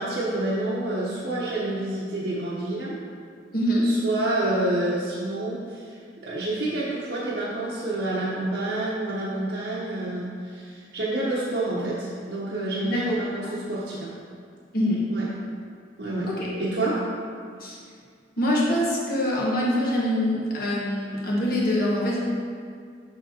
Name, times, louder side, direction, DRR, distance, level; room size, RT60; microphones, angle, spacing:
voice 1, 0.0-3.0 3.8-14.1 15.1-15.3 16.0-16.3 16.6-17.0, right 2 dB, 65° right, -8 dB, 0.9 m, -28 dB
voice 2, 3.5-3.8 12.8-13.1 14.7-15.0 16.3-16.5 17.6-17.8 18.4-22.2, left 1 dB, 55° left, -5 dB, 1.4 m, -24 dB
6.3 x 6.2 x 2.8 m, 2.1 s
head